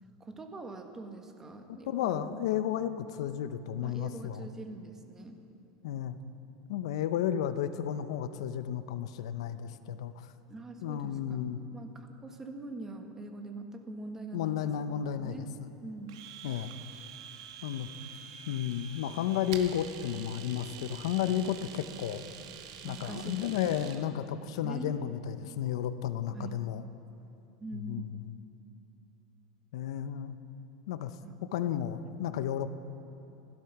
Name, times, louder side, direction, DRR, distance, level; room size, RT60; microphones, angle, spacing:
voice 1, 0.2-2.4 3.8-5.4 10.5-14.9 15.2-15.5 15.8-16.2 22.8-23.9 24.5-24.9 26.3-26.6 27.6-28.1 31.2-31.4, right 3 dB, 15° right, 4 dB, 1.4 m, -43 dB
voice 2, 1.7-4.5 5.8-6.2 6.7-10.3 10.8-11.6 14.3-15.5 16.4-16.7 17.6-17.9 18.5-22.2 22.8-26.8 27.7-28.0 29.7-30.4 30.9-31.1 31.5-32.7, left 10 dB, 80° left, 11 dB, 0.7 m, -33 dB
Domestic sounds home sounds, 16.1-24.0, right 8 dB, 80° right, 1.3 m, -47 dB
16.0 x 12.0 x 5.9 m, 2.8 s
supercardioid pair, 135°, 3 cm